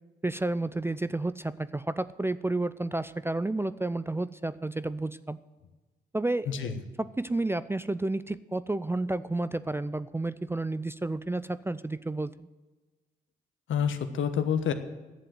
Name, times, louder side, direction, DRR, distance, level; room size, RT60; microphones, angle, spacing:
voice 1, 0.2-5.4 6.1-12.5, right 2 dB, 10° right, 15 dB, 0.4 m, -31 dB
voice 2, 6.5-6.8 13.7-14.7, left 8 dB, 65° left, 9 dB, 1.1 m, -28 dB
11.5 x 7.6 x 7.6 m, 1.2 s
hypercardioid pair, 45°, 21 cm